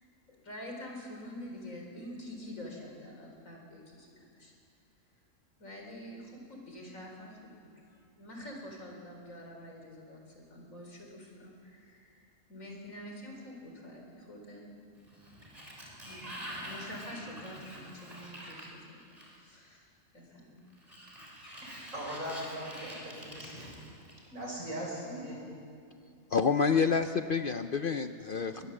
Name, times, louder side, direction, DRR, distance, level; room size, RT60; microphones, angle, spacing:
voice 1, 0.0-4.5 5.6-7.5 7.9-14.6 16.0-19.0 19.3-20.6, left 1 dB, 80° left, 1 dB, 4.8 m, -47 dB
Sliding door, 15.0-19.6 20.7-24.4, equal, 30° right, 4.2 m, -46 dB
voice 2, 21.6-23.7 24.3-25.4, equal, 80° right, -3 dB, 6.6 m, -40 dB
voice 3, 26.3-28.6, left 5 dB, 55° left, 9 dB, 0.7 m, -28 dB
22.5 x 19.5 x 7.6 m, 2.3 s
omnidirectional pair, 1.4 m